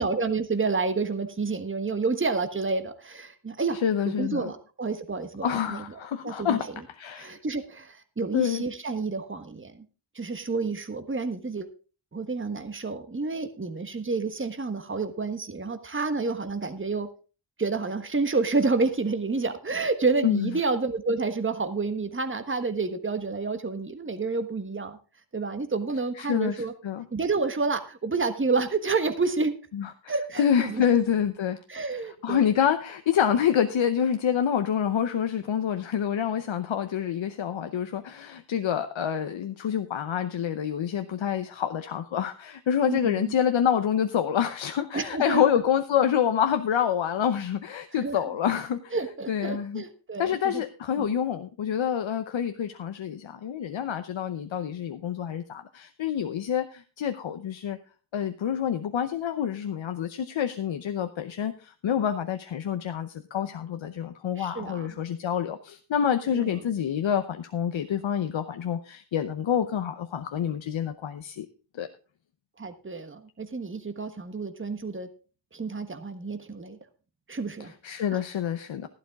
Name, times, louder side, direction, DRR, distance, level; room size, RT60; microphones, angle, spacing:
voice 1, 0.0-3.8 4.0-5.8 6.2-6.7 7.1-9.8 10.1-11.7 12.1-17.1 17.6-25.0 25.3-26.7 27.1-29.5 30.1-30.9 31.7-32.5 42.8-43.3 44.9-45.4 48.0-48.2 48.9-50.6 51.0-51.2 64.4-64.9 66.3-66.6 72.6-75.1 75.5-76.8 77.3-77.7 78.1-78.2, right 4 dB, 25° right, 9 dB, 1.4 m, -29 dB
voice 2, 3.8-4.5 5.4-6.6 7.0-7.4 8.3-8.6 20.2-20.5 26.2-27.0 29.7-31.6 32.2-48.9 49.3-49.8 50.2-57.8 58.1-71.5 71.8-71.9 77.6-78.9, left 8 dB, 75° left, 9 dB, 0.9 m, -27 dB
12.0 x 11.5 x 3.6 m, 0.35 s
cardioid pair, 60°, 46 cm